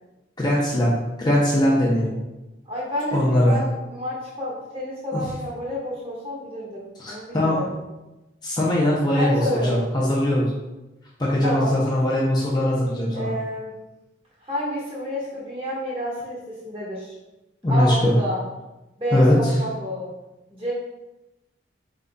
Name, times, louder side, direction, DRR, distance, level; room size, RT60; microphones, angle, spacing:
voice 1, 0.4-0.9 1.2-2.1 3.1-3.6 5.1-5.2 7.0-7.6 8.4-10.5 11.2-13.3 17.6-18.1 19.1-19.6, left 1 dB, 20° left, -6 dB, 0.7 m, -20 dB
voice 2, 2.7-7.7 9.1-9.8 11.4-11.7 13.1-13.7 14.4-17.1 17.7-18.4 19.0-20.1 20.5-20.7, equal, 30° right, -7 dB, 1.5 m, -29 dB
4.7 x 3.8 x 2.3 m, 1.0 s
head